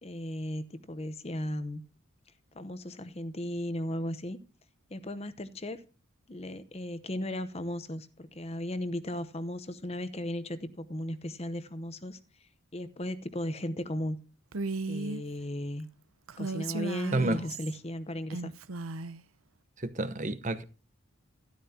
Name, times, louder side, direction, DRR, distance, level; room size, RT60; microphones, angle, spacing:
voice 1, 0.0-1.8 2.5-4.4 4.9-5.8 6.3-14.2 14.8-15.9 16.4-18.5, left 1 dB, 30° left, 0.9 m, -36 dB
Female speech woman speaking, 14.5-15.2 16.3-17.8 18.3-19.2, right 3 dB, 80° right, 0.8 m, -35 dB
voice 2, 19.8-20.6, right 2 dB, 35° right, 0.9 m, -29 dB
12.5 x 12.5 x 2.8 m
head